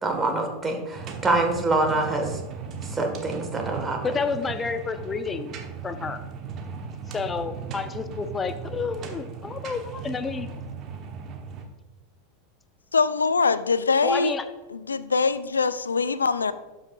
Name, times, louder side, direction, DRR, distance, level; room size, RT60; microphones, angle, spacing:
voice 1, 0.0-2.4 2.9-4.2, right 2 dB, 20° right, 3 dB, 1.5 m, -25 dB
Furnace Burning, 0.9-11.6, right 5 dB, 40° right, 1.1 m, -37 dB
voice 2, 4.0-5.5 5.8-6.2 7.1-10.5 14.0-14.4, left 4 dB, 20° left, 10 dB, 0.6 m, -29 dB
voice 3, 12.9-14.3 14.7-16.5, left 4 dB, 85° left, 15 dB, 0.3 m, -23 dB
12.5 x 5.5 x 2.4 m, 1.2 s
figure-of-eight pair, 85°, 0 cm